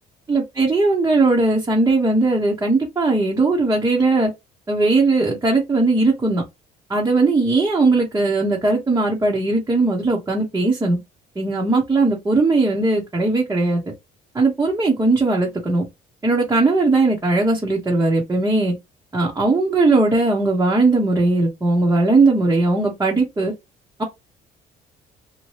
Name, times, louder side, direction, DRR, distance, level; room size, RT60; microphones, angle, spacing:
voice 1, 0.3-4.3 4.7-6.4 6.9-11.0 11.4-13.8 14.3-15.8 16.2-18.7 19.1-23.5 24.0-24.1, right 3 dB, 15° right, 0.8 m, -18 dB
2.8 x 2.2 x 3.1 m
cardioid pair, 110°, 17 cm